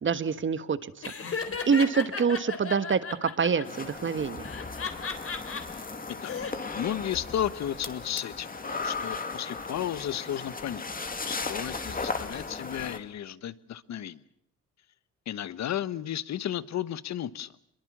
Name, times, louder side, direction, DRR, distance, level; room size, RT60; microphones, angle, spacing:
voice 1, 0.0-0.8 1.3-4.5, right 6 dB, 40° right, 1.5 m, -26 dB
Laughter, 1.0-3.6 4.4-5.6 6.1-6.5, left 5 dB, 50° left, 3.8 m, -34 dB
sound 1, 3.6-13.0, left 4 dB, 30° left, 2.5 m, -36 dB
voice 2, 6.1-10.9 11.3-14.2 15.3-17.5, left 10 dB, 65° left, 1.2 m, -33 dB
24.5 x 22.5 x 7.4 m
cardioid pair, 90°, 30 cm